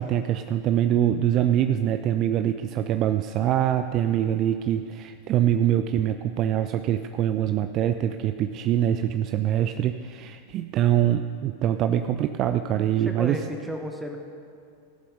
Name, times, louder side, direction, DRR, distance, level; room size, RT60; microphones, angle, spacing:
voice 1, 0.0-13.4, right 11 dB, 35° right, 9 dB, 0.4 m, -24 dB
voice 2, 13.0-14.2, right 1 dB, 5° right, 3 dB, 1.3 m, -33 dB
17.0 x 7.6 x 5.2 m, 2.4 s
figure-of-eight pair, 90°, 0 cm